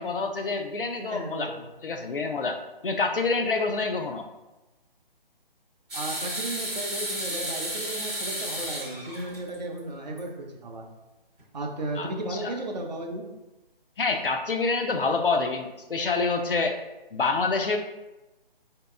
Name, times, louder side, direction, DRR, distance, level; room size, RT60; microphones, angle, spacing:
voice 1, 0.0-1.5 1.8-4.3 12.0-12.5 14.0-16.8 17.1-17.8, left 4 dB, 65° left, 4 dB, 0.6 m, -27 dB
voice 2, 1.0-1.7 5.9-10.9 11.5-13.3, right 2 dB, 45° right, 1 dB, 0.7 m, -35 dB
sound 1, 5.9-9.8 10.2-10.3 11.4-11.5, right 1 dB, 5° right, 0.6 m, -32 dB
4.6 x 2.8 x 3.5 m, 1.0 s
figure-of-eight pair, 145°, 29 cm